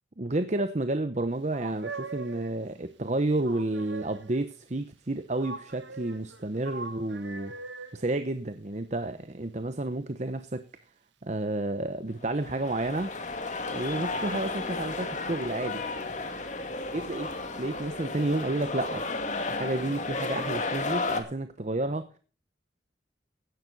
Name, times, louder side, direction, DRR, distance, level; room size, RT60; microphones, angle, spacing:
voice 1, 0.2-7.5 7.9-10.6 11.2-13.1 13.7-15.8 16.9-17.3 17.6-19.0 19.5-22.2, right 2 dB, 40° right, 10 dB, 0.9 m, -31 dB
sound 1, 1.5-2.7 3.4-4.5 5.4-8.0 14.9-15.0 15.7-16.6 17.3-18.1 19.0-19.8 20.1-21.0, right 4 dB, 85° right, 1.6 m, -43 dB
sound 2, 12.2-21.2, left 3 dB, 40° left, 2.2 m, -33 dB
16.0 x 11.0 x 4.0 m, 0.39 s
head